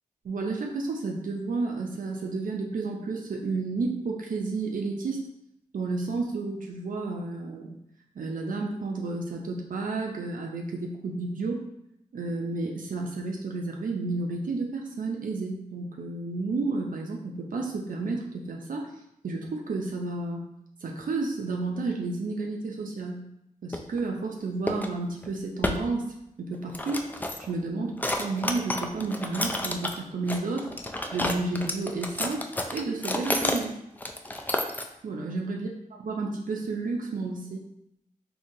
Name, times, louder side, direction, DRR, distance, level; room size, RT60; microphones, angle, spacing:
voice 1, 0.2-5.2 5.7-7.7 8.2-11.6 12.1-18.9 19.2-20.5 20.8-23.2 23.6-27.1 27.4-30.7 31.1-33.8 35.0-35.7 36.0-37.6, right 3 dB, 70° right, 0 dB, 0.4 m, -31 dB
sound 1, 23.7-24.0 24.7-24.9 25.2-25.3 25.6-25.8 26.5-27.5 28.0-30.0 30.3-33.6 34.0-34.9, left 1 dB, 10° left, 0.3 m, -30 dB
3.7 x 2.8 x 2.6 m, 0.80 s
wide cardioid pair, 75°, 15 cm